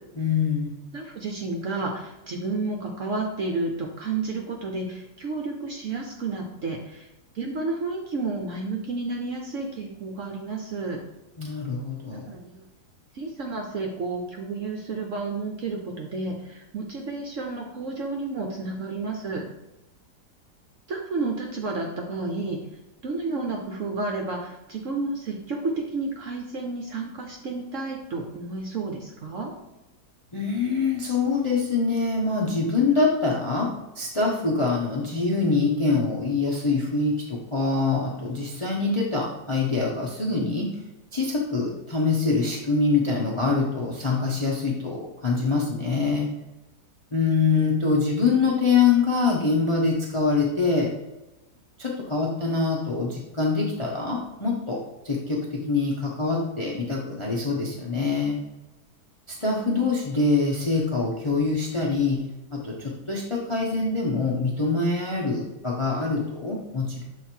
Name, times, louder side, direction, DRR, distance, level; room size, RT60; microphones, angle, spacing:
voice 1, 0.2-0.8 11.4-12.3 30.3-40.7 41.1-46.3 47.1-50.9 51.8-54.8 55.0-58.4 59.3-62.2 62.5-67.0, left 4 dB, 30° left, -2 dB, 0.6 m, -24 dB
voice 2, 0.9-7.1 7.3-11.0 12.1-12.6 13.1-19.4 20.9-22.6 23.0-29.5, right 3 dB, 60° right, 1 dB, 0.9 m, -31 dB
6.7 x 3.3 x 4.4 m, 0.99 s
omnidirectional pair, 1.9 m